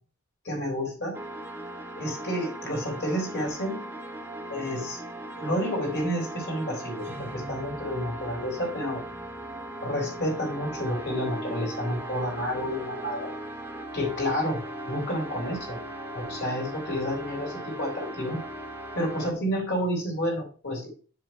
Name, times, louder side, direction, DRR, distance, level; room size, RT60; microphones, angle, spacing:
voice 1, 0.4-1.2 2.0-3.8 4.5-5.0 5.3-9.0 9.8-13.3 13.9-15.8 16.1-18.4 18.9-20.9, equal, 50° left, 0 dB, 4.2 m, -30 dB
sound 1, 1.1-19.3, right 1 dB, 10° right, 1.1 m, -38 dB
7.9 x 4.6 x 5.4 m, 0.37 s
head